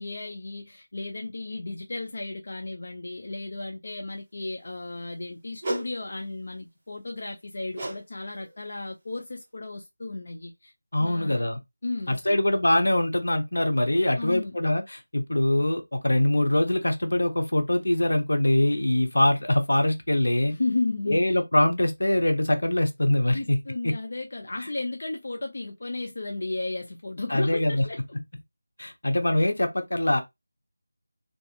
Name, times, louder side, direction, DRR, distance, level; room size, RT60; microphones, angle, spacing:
voice 1, 0.0-10.7 11.0-11.5 11.8-12.4 14.2-14.6 20.5-21.4 23.3-28.0, left 2 dB, 50° left, 0.4 m, -34 dB
sound 1, 5.6-5.9 7.8-8.0 8.3-8.6 9.2-9.3, right 1 dB, 25° right, 0.7 m, -32 dB
voice 2, 10.9-11.6 12.1-20.6 21.1-23.6 27.3-27.8 28.8-30.2, left 1 dB, 75° left, 0.7 m, -23 dB
2.4 x 2.4 x 2.5 m
figure-of-eight pair, 170°, 0 cm